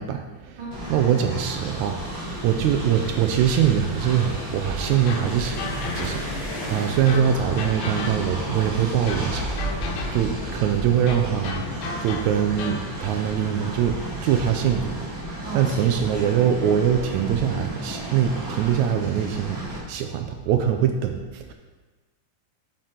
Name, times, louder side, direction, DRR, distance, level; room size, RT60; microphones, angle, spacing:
voice 1, 0.0-0.6 0.9-2.1 2.4-9.5 10.1-11.6 12.0-15.1 15.4-21.5, right 9 dB, 80° right, 5 dB, 1.8 m, -23 dB
voice 2, 0.6-0.9 9.8-10.0 13.0-13.2 15.4-16.4, right 3 dB, 60° right, -5 dB, 1.4 m, -37 dB
Train, 0.7-19.8, right 1 dB, 45° right, 1.3 m, -33 dB
sound 1, 1.8-15.1, left 2 dB, 55° left, 1.9 m, -41 dB
sound 2, 5.1-6.5 7.1-8.5 9.1-10.4 11.1-12.9, left 4 dB, 70° left, 1.9 m, -34 dB
7.7 x 5.2 x 4.4 m, 1.3 s
omnidirectional pair, 3.6 m